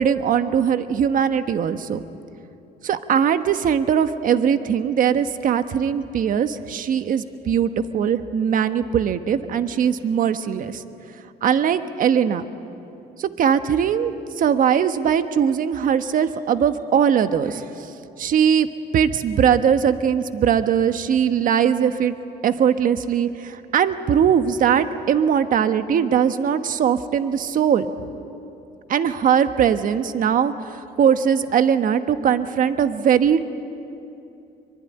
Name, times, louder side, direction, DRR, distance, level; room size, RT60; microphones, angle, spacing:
voice 1, 0.0-2.0 2.8-10.8 11.4-12.4 13.2-17.9 18.2-18.7 18.9-22.2 22.4-27.9 28.9-33.5, right 8 dB, 55° right, 9 dB, 1.3 m, -20 dB
24.5 x 24.0 x 10.0 m, 2.7 s
cardioid pair, 110°, 17 cm